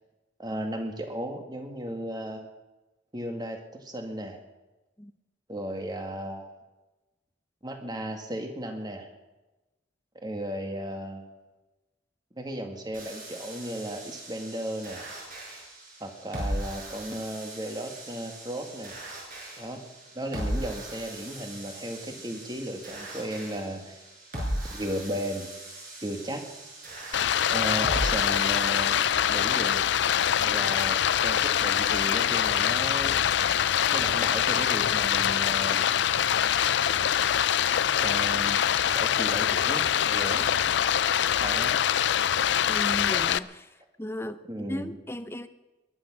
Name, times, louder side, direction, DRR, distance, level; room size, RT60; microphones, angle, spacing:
voice 1, 0.4-2.5 3.1-4.4 5.5-6.5 7.6-9.1 10.2-11.3 12.4-15.1 16.0-19.0 19.6-19.8 20.1-24.0 24.7-25.5 26.0-26.5 27.5-29.9 30.4-33.2 33.9-35.9 38.0-40.4 41.4-41.7 44.5-44.9, right 1 dB, 20° right, 4 dB, 2.1 m, -35 dB
sound 1, 12.9-29.1, right 1 dB, 45° right, 6.8 m, -38 dB
Stream, 27.1-43.4, left 9 dB, 65° left, 0.4 m, -24 dB
voice 2, 42.7-43.7 44.0-44.4 44.7-45.5, left 1 dB, 15° left, 11 dB, 0.7 m, -35 dB
21.0 x 11.0 x 6.2 m, 1.1 s
head